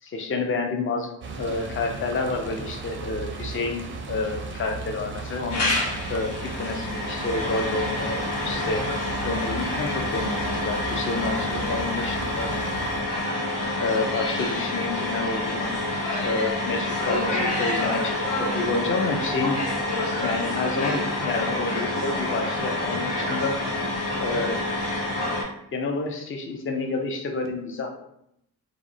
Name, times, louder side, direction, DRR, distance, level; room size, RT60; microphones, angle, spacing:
voice 1, 0.0-5.7 6.1-8.9 9.2-12.5 13.8-15.8 16.2-19.6 20.1-23.6 24.2-24.6 25.7-28.0, left 3 dB, 30° left, 3 dB, 0.5 m, -29 dB
sound 1, 1.2-13.0, right 4 dB, 30° right, 0.4 m, -36 dB
sound 2, 5.5-25.4, left 1 dB, 80° left, 0.8 m, -27 dB
2.4 x 2.0 x 2.7 m, 0.75 s
supercardioid pair, 45°, 42 cm